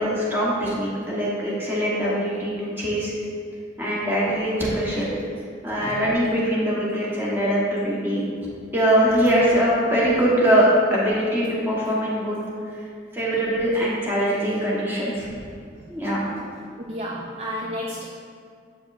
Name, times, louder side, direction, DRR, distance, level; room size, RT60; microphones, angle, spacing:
voice 1, 0.0-3.1 3.8-5.1 5.6-8.2 8.7-12.4 13.1-15.3 15.9-16.2, equal, 10° right, -7 dB, 1.1 m, -22 dB
voice 2, 16.8-18.1, equal, 30° right, -2 dB, 0.4 m, -31 dB
7.7 x 5.2 x 2.5 m, 2.3 s
head